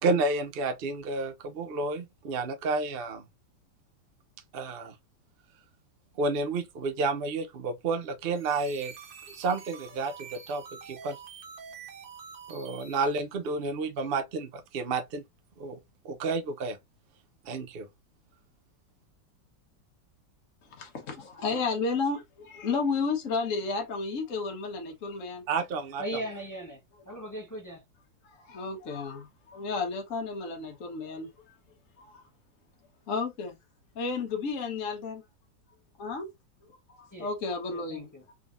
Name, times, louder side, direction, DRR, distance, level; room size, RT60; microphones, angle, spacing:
voice 1, 0.0-3.2 4.5-4.9 6.2-8.9 9.3-11.2 12.5-15.2 15.6-15.8 16.0-16.8 17.4-17.9 25.5-26.2, right 3 dB, 60° right, 0.6 m, -30 dB
sound 1, 8.2-13.3, right 6 dB, 85° right, 1.8 m, -47 dB
voice 2, 20.7-25.4 28.2-31.5 32.0-32.2 33.1-33.6 33.9-35.2 36.0-36.3 36.9-38.1, left 4 dB, 50° left, 1.4 m, -32 dB
voice 3, 26.0-26.8 27.1-27.8 37.1-37.3 37.7-38.2, right 1 dB, 25° left, 0.4 m, -38 dB
3.8 x 3.6 x 2.5 m
omnidirectional pair, 1.9 m